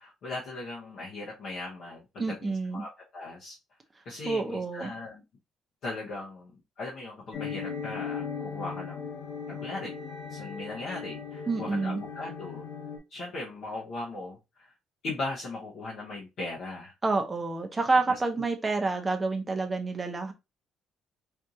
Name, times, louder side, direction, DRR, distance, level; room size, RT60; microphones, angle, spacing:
voice 1, 0.0-3.6 4.0-5.2 5.8-9.0 9.5-9.9 10.3-12.7 13.1-14.7 15.0-16.9 18.1-18.4, left 2 dB, 50° left, 0.9 m, -38 dB
voice 2, 2.2-2.8 4.2-4.9 11.5-12.0 17.0-20.3, right 3 dB, 15° right, 0.6 m, -28 dB
sound 1, 7.3-13.0, left 6 dB, 70° left, 1.4 m, -38 dB
4.5 x 2.5 x 2.6 m
cardioid pair, 180°, 0 cm